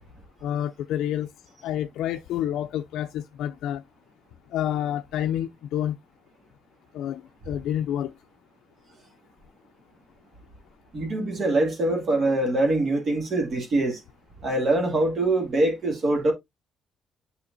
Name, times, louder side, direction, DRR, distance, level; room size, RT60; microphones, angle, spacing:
voice 1, 0.4-1.3 1.6-3.8 4.5-6.0 6.9-8.1, left 11 dB, 85° left, 0.4 m, -28 dB
voice 2, 10.9-14.0 14.4-16.3, right 2 dB, 50° right, 2.1 m, -23 dB
7.0 x 5.5 x 2.5 m
cardioid pair, 90°, 0 cm